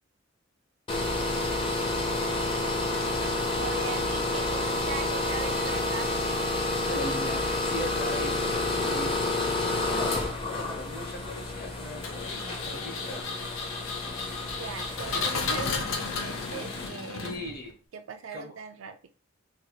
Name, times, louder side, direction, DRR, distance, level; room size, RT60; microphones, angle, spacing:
sound 1, 0.9-16.9, left 2 dB, 30° left, 0.6 m, -30 dB
voice 1, 3.2-6.1 14.4-17.2 17.9-19.1, right 6 dB, 80° right, 6 dB, 0.5 m, -40 dB
voice 2, 6.6-13.3 17.1-17.7 18.3-18.5, equal, 50° left, 0 dB, 0.9 m, -39 dB
Engine, 12.0-17.7, left 4 dB, 85° left, 0.6 m, -34 dB
2.9 x 2.3 x 3.0 m, 0.34 s
head